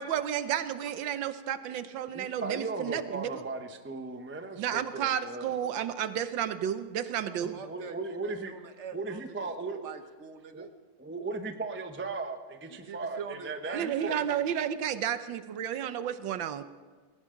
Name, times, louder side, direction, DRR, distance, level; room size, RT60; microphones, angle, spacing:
voice 1, 0.0-3.4 4.6-7.6 13.7-16.6, right 9 dB, 75° right, 11 dB, 1.5 m, -32 dB
voice 2, 2.1-5.6 7.4-8.6 8.9-9.9 10.5-10.7 11.0-14.2, right 3 dB, 15° right, 6 dB, 0.4 m, -37 dB
voice 3, 7.2-8.0 8.2-9.2 9.7-10.7 12.8-14.4, right 6 dB, 45° right, 8 dB, 1.2 m, -44 dB
21.0 x 17.5 x 3.8 m, 1.5 s
omnidirectional pair, 2.1 m